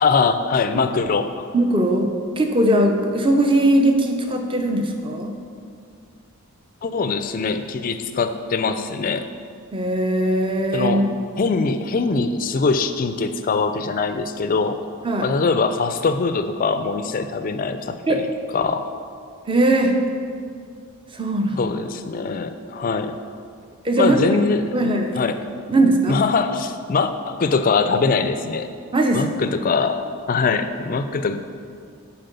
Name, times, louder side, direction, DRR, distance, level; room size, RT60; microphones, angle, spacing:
voice 1, 0.0-1.5 6.8-9.3 10.7-11.0 11.4-14.8 15.2-18.3 18.5-18.9 21.6-23.1 24.0-24.9 25.2-25.3 26.1-28.7 29.1-31.4, left 4 dB, 40° left, 10 dB, 0.3 m, -22 dB
voice 2, 1.5-2.1 2.4-5.3 9.7-11.1 15.0-15.3 18.1-18.2 19.5-20.0 21.1-21.6 23.8-24.2 24.7-25.2 25.7-26.2 28.9-29.2, right 1 dB, 25° right, 4 dB, 0.6 m, -19 dB
7.6 x 4.4 x 6.8 m, 2.3 s
head